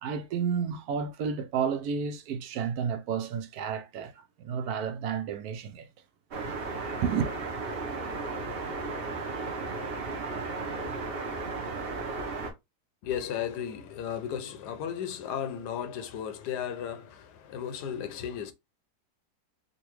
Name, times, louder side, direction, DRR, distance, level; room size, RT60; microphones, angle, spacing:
voice 1, 0.0-5.9 7.0-7.3, right 7 dB, 75° right, 1.0 m, -31 dB
sound 1, 6.3-12.5, right 3 dB, 50° right, 0.8 m, -34 dB
voice 2, 13.0-18.5, left 9 dB, 85° left, 1.3 m, -35 dB
3.9 x 2.3 x 3.0 m
omnidirectional pair, 1.7 m